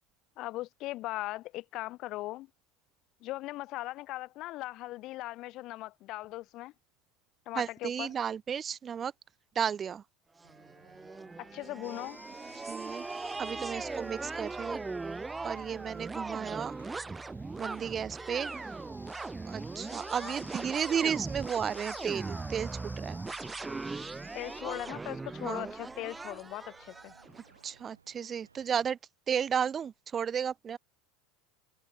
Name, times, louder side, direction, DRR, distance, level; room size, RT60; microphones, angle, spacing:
voice 1, 0.4-2.5 3.2-6.7 7.5-8.1 11.4-12.2 20.2-20.4 24.3-27.1, left 17 dB, 50° left, 1.1 m, -39 dB
voice 2, 7.6-9.1 9.6-10.0 12.7-13.0 13.4-14.8 15.4-16.7 17.6-18.5 19.4-22.7 23.0-23.2 25.4-25.7 27.6-29.0 29.3-30.8, right 7 dB, 30° right, 0.4 m, -33 dB
sound 1, 10.4-27.5, right 3 dB, 15° right, 1.0 m, -39 dB
sound 2, 10.4-28.8, right 6 dB, 80° right, 3.0 m, -63 dB
sound 3, 11.8-24.6, left 3 dB, 85° left, 3.0 m, -56 dB
figure-of-eight pair, 75°, 0 cm